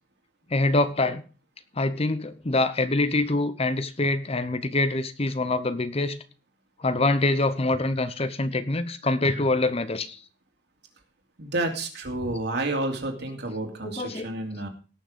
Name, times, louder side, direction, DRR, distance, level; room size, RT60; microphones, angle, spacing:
voice 1, 0.5-1.2 1.8-6.2 6.8-10.2 13.8-14.3, left 2 dB, 35° left, 12 dB, 0.9 m, -25 dB
voice 2, 11.4-14.7, right 2 dB, 65° right, 3 dB, 2.8 m, -30 dB
18.0 x 6.4 x 5.1 m, 0.35 s
head